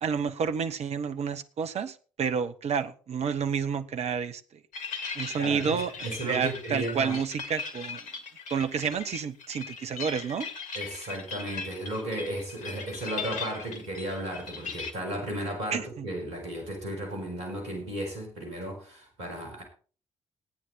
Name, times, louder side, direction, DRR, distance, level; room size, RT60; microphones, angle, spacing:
voice 1, 0.0-4.6 5.1-5.9 6.2-8.0 8.5-10.5 15.7-16.1, right 6 dB, 45° right, 10 dB, 1.1 m, -30 dB
sound 1, 4.7-14.9, left 5 dB, 55° left, 1.9 m, -39 dB
voice 2, 5.1-7.1 10.7-19.6, right 1 dB, 75° right, 0 dB, 4.4 m, -35 dB
15.5 x 9.4 x 4.2 m, 0.39 s
figure-of-eight pair, 40°, 15 cm